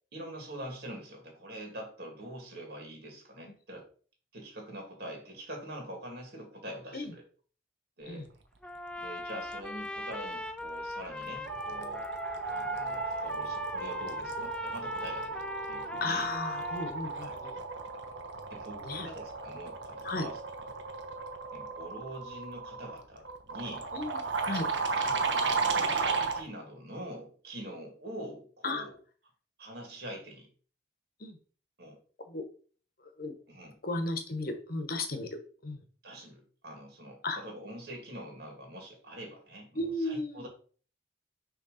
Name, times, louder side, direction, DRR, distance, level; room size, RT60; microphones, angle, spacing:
voice 1, 0.1-3.9 4.3-7.2 8.0-8.3 9.0-12.1 12.5-16.3 17.1-17.4 18.5-20.4 21.5-23.9 24.5-24.7 25.0-25.2 25.7-28.9 29.6-30.5 31.8-32.0 33.5-33.8 36.0-40.5, right 1 dB, 55° right, 1 dB, 2.5 m, -44 dB
Trumpet, 8.6-17.0, left 2 dB, 5° left, 0.3 m, -40 dB
sound 1, 10.6-10.9 11.2-26.4, right 4 dB, 75° right, 1.0 m, -35 dB
voice 2, 16.0-17.5 18.8-19.1 20.0-20.3 23.9-24.2 24.5-24.7 28.6-28.8 31.2-31.4 32.3-32.4 33.0-33.4 33.8-35.8 37.2-37.4 39.7-40.5, left 2 dB, 55° left, 7 dB, 1.1 m, -35 dB
6.4 x 3.3 x 5.6 m, 0.42 s
head